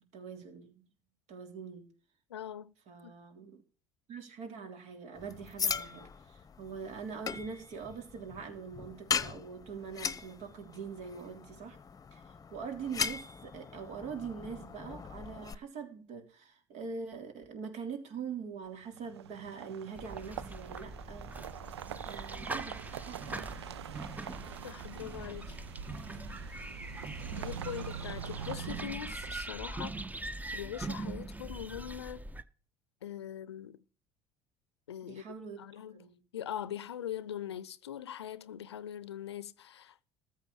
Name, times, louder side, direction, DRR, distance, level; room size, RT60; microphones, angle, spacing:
voice 1, 0.1-0.9 1.3-1.9 2.9-3.6 4.1-11.8 12.1-21.3 22.0-23.2 35.0-35.6 35.9-36.2, right 6 dB, 60° right, 3.3 m, -43 dB
voice 2, 2.3-2.7 3.0-3.1 24.6-25.6 27.4-30.0 30.5-32.3 33.0-33.8 34.9-35.2 35.6-40.0, left 10 dB, 85° left, 0.6 m, -42 dB
sound 1, 5.2-15.5, left 6 dB, 25° left, 0.9 m, -39 dB
sound 2, 18.8-29.7, right 9 dB, 85° right, 0.5 m, -44 dB
sound 3, 20.0-32.4, right 2 dB, 10° right, 0.9 m, -42 dB
14.0 x 4.9 x 7.2 m
hypercardioid pair, 65°, 13 cm